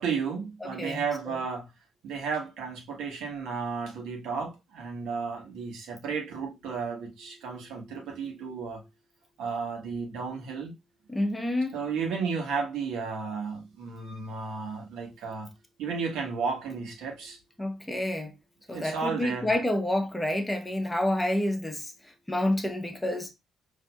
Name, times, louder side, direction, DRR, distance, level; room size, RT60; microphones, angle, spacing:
voice 1, 0.0-1.7 2.0-8.8 9.4-10.7 11.7-15.5 15.8-17.4 18.7-19.5, right 5 dB, 90° right, 1.1 m, -33 dB
voice 2, 0.6-1.4 11.1-11.8 17.6-18.3 18.7-21.9 22.3-23.3, left 1 dB, 15° left, 0.8 m, -29 dB
4.2 x 2.7 x 2.2 m
cardioid pair, 90°, 0 cm